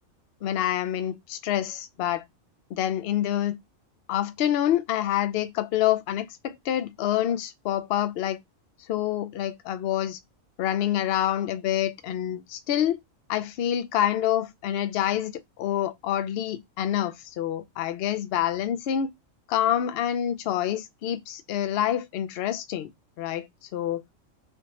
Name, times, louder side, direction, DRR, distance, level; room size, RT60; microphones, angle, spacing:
voice 1, 0.4-2.2 2.7-3.6 4.1-8.4 8.9-10.2 10.6-13.0 13.3-15.3 15.6-19.1 19.5-22.9 23.2-23.5 23.7-24.0, left 11 dB, 60° left, 0.6 m, -27 dB
3.4 x 2.8 x 2.9 m
omnidirectional pair, 1.4 m